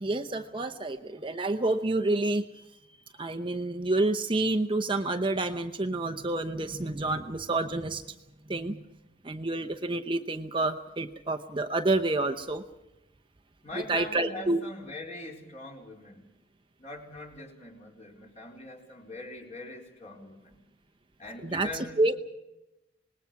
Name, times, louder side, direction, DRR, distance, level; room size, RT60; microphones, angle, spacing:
voice 1, 0.0-2.6 3.2-8.0 8.5-8.8 9.2-12.6 13.9-14.6 21.4-22.2, right 2 dB, 25° right, 7 dB, 0.8 m, -28 dB
voice 2, 13.6-16.2 16.8-20.6 21.2-22.1, left 2 dB, 35° left, 0 dB, 4.4 m, -42 dB
26.5 x 20.0 x 5.9 m, 0.95 s
head